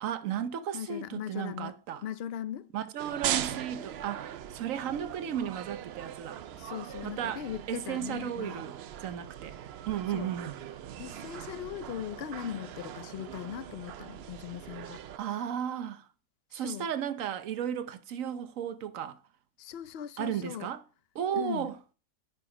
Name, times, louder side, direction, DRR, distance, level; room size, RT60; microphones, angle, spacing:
voice 1, 0.0-2.0 2.7-6.4 7.0-9.6 9.9-10.6 15.2-16.1 16.5-19.2 20.2-20.8 21.1-21.7, right 9 dB, 60° right, 1.1 m, -34 dB
voice 2, 0.7-1.7 2.0-2.7 6.5-8.6 10.1-10.3 11.0-15.0 16.5-16.9 19.6-20.7 21.3-21.7, left 10 dB, 65° left, 0.6 m, -39 dB
sound 1, 3.0-15.2, right 10 dB, 85° right, 0.5 m, -40 dB
9.5 x 4.8 x 5.0 m
omnidirectional pair, 1.7 m